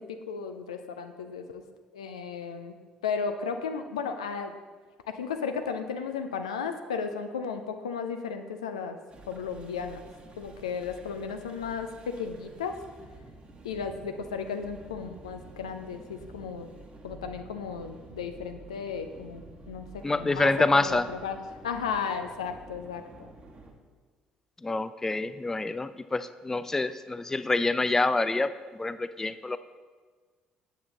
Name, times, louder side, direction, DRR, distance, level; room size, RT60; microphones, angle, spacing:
voice 1, 0.3-1.6 1.9-2.7 3.0-4.5 5.2-9.0 9.3-10.0 10.4-11.9 12.2-12.7 13.6-16.7 17.0-21.4 21.6-23.3, left 6 dB, 75° left, 7 dB, 0.5 m, -34 dB
sound 1, 9.1-23.7, right 2 dB, 30° right, 1.1 m, -50 dB
voice 2, 20.0-21.0 24.6-29.6, left 2 dB, 15° left, 13 dB, 0.3 m, -27 dB
8.6 x 7.2 x 3.8 m, 1.5 s
figure-of-eight pair, 50°, 3 cm